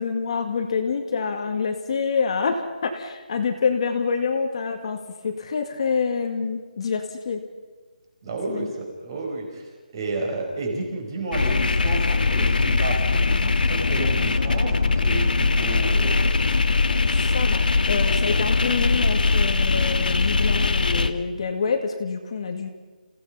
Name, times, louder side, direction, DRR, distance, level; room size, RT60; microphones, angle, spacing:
voice 1, 0.0-5.0 5.2-7.4 8.5-8.7 17.1-22.7, left 5 dB, 35° left, 4 dB, 2.0 m, -27 dB
voice 2, 8.2-16.3 16.9-17.4, right 2 dB, 30° right, 2 dB, 5.2 m, -31 dB
sound 1, 11.3-21.1, left 4 dB, 70° left, 1.6 m, -21 dB
28.5 x 17.0 x 5.7 m, 1.3 s
hypercardioid pair, 170°, 5 cm